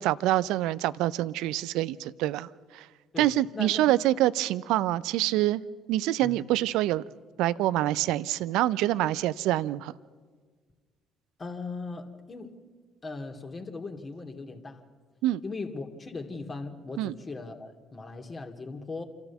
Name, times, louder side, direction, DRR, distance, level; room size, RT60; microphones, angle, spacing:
voice 1, 0.0-2.9 3.2-5.6 5.9-7.0 7.4-9.9 15.2-15.4 17.0-17.1, right 14 dB, 75° right, 18 dB, 0.5 m, -26 dB
voice 2, 3.1-3.9 6.2-6.4 11.4-12.6 13.0-14.8 15.4-19.0, left 3 dB, 35° left, 4 dB, 2.7 m, -39 dB
28.0 x 13.5 x 7.1 m, 1.5 s
hypercardioid pair, 55°, 0 cm